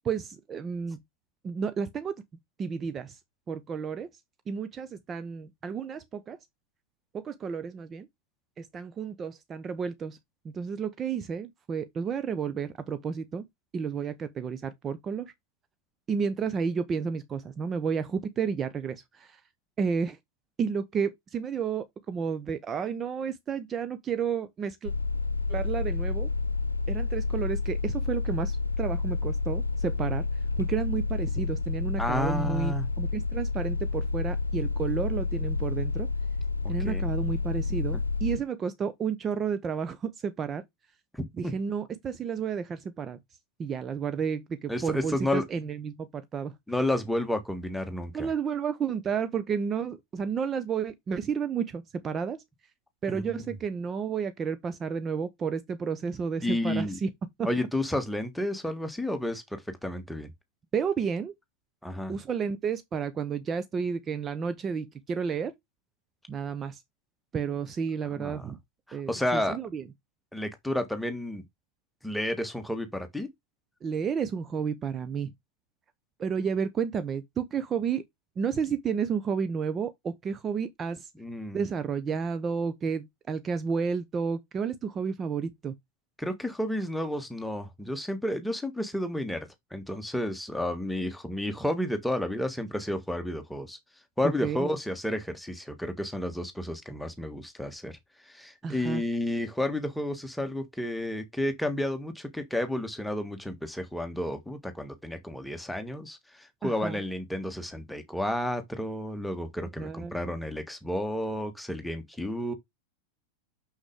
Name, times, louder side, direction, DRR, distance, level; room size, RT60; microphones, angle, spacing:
voice 1, 0.0-1.0 1.4-2.1 2.6-3.2 3.5-4.1 4.5-6.4 7.1-8.1 8.6-10.2 10.4-13.4 13.7-15.3 16.1-19.4 19.8-20.2 20.6-24.9 25.5-26.3 26.9-30.2 30.6-36.1 36.7-40.6 41.4-43.2 43.6-46.5 48.1-52.4 53.0-57.1 57.4-57.5 60.7-61.3 62.1-65.5 66.3-66.8 67.3-68.6 68.9-69.8 73.8-75.3 76.2-78.0 78.4-81.1 81.5-85.7 94.2-94.7 98.6-99.0 106.6-107.0 109.8-110.3, right 6 dB, 25° right, 0.9 m, -31 dB
sound 1, 24.8-38.4, left 3 dB, 80° left, 0.8 m, -29 dB
voice 2, 32.0-32.9 36.6-37.0 41.1-41.5 44.7-45.4 46.7-48.3 53.1-53.5 56.4-57.0 57.4-60.3 61.8-62.1 68.1-68.5 68.9-69.6 70.3-71.4 72.0-73.3 81.1-81.6 86.2-93.8 94.2-98.0 98.3-112.5, left 1 dB, 5° left, 1.6 m, -31 dB
6.5 x 6.2 x 3.6 m
figure-of-eight pair, 90°, 0 cm